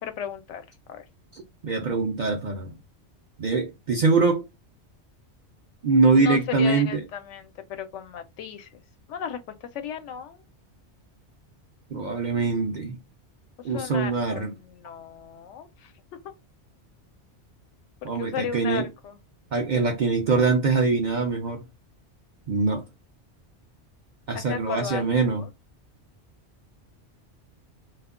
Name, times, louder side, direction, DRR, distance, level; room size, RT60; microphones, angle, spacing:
voice 1, 0.0-1.0 6.2-8.8 9.1-9.4 9.7-10.4 13.7-15.9 18.1-19.2 24.3-25.5, left 8 dB, 85° left, 0.9 m, -35 dB
voice 2, 1.3-2.7 3.4-4.5 5.8-7.0 11.9-13.0 13.6-14.5 18.0-18.9 19.5-21.6 22.5-22.8 24.3-25.4, right 4 dB, 60° right, 0.5 m, -23 dB
2.3 x 2.1 x 3.5 m
omnidirectional pair, 1.2 m